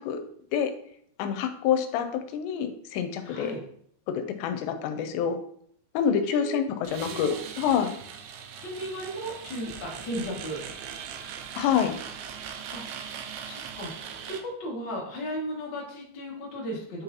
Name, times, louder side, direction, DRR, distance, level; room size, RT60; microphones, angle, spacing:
voice 1, 1.2-3.5 4.1-5.4 5.9-7.9 11.6-11.9, left 8 dB, 85° left, 8 dB, 2.8 m, -27 dB
voice 2, 3.2-3.6 6.3-6.6 7.0-7.3 8.6-10.6 12.7-17.0, equal, 60° left, -4 dB, 1.1 m, -36 dB
sound 1, 6.8-14.4, right 7 dB, 85° right, 2.2 m, -40 dB
8.4 x 4.0 x 2.8 m, 0.65 s
omnidirectional pair, 5.0 m